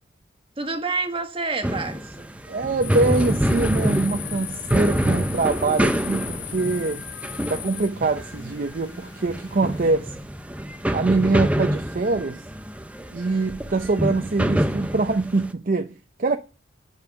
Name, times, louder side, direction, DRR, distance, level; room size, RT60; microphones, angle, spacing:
voice 1, 0.6-2.3, right 3 dB, 30° right, 1.3 m, -28 dB
sound 1, 1.6-15.5, equal, 5° right, 0.6 m, -27 dB
voice 2, 2.5-7.0 7.5-10.2 10.9-12.4 13.1-16.4, right 3 dB, 45° right, 0.6 m, -24 dB
sound 2, 2.8-9.9, left 12 dB, 65° left, 0.8 m, -38 dB
sound 3, 3.2-8.6, left 1 dB, 35° left, 1.4 m, -47 dB
9.8 x 5.4 x 8.0 m
head